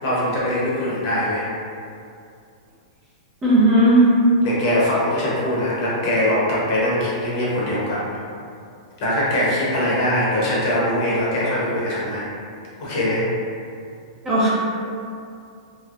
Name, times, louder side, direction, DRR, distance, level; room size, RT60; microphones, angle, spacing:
voice 1, 0.0-1.4 4.4-8.0 9.0-12.2 12.8-13.3, left 1 dB, 40° left, -7 dB, 0.9 m, -22 dB
voice 2, 3.4-4.0 14.2-14.5, right 1 dB, 15° right, -9 dB, 0.6 m, -15 dB
3.1 x 2.9 x 2.5 m, 2.4 s
supercardioid pair, 165°, 4 cm